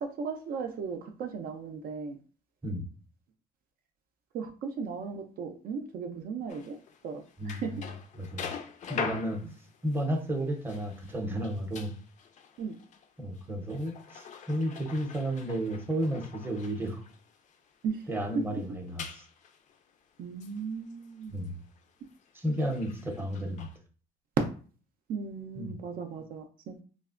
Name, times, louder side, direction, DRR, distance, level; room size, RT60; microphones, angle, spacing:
voice 1, 0.0-2.2 4.3-6.8 7.0-7.2 7.6-7.7 12.6-12.8 17.8-18.0 20.2-21.4 25.1-26.8, right 5 dB, 60° right, 4 dB, 0.4 m, -36 dB
sound 1, 6.5-17.8 18.2-18.3 18.6-23.8, left 6 dB, 45° left, 0.4 m, -44 dB
voice 2, 7.4-8.5 8.9-9.4 9.8-11.9 13.2-17.0 18.1-19.2 21.3-21.6 22.3-23.7 25.6-25.8, right 1 dB, 15° right, 3 dB, 0.6 m, -33 dB
3.1 x 2.1 x 2.4 m, 0.39 s
cardioid pair, 110°, 17 cm